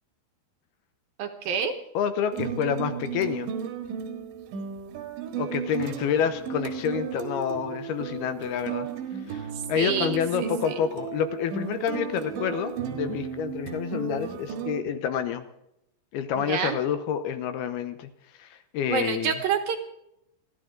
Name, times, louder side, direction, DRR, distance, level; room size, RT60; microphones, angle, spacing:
voice 1, 1.2-1.7 9.5-10.7 16.4-16.8 18.9-19.8, right 7 dB, 65° right, 6 dB, 2.7 m, -28 dB
voice 2, 1.9-3.5 5.4-8.9 9.3-15.4 16.1-18.1 18.4-19.3, left 8 dB, 75° left, 10 dB, 2.6 m, -28 dB
sound 1, 2.3-14.8, right 7 dB, 85° right, 3.9 m, -34 dB
29.0 x 12.0 x 3.8 m, 0.80 s
omnidirectional pair, 5.0 m